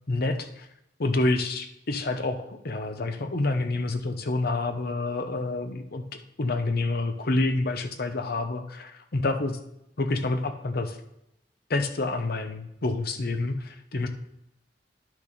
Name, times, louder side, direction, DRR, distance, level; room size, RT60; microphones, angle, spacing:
voice 1, 0.1-0.7 1.0-6.0 6.4-9.6 10.0-11.0 11.7-14.1, left 2 dB, 55° left, 7 dB, 0.8 m, -28 dB
10.5 x 6.1 x 4.0 m, 0.84 s
head